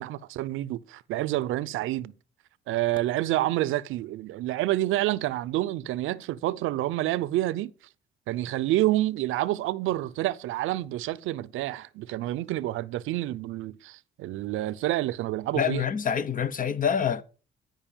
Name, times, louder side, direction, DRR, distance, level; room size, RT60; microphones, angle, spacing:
voice 1, 0.0-2.1 2.7-7.7 8.3-15.8, right 15 dB, 90° right, 0.7 m, -28 dB
voice 2, 15.5-17.2, left 7 dB, 45° left, 1.0 m, -26 dB
14.0 x 5.4 x 7.1 m
cardioid pair, 90°, 20 cm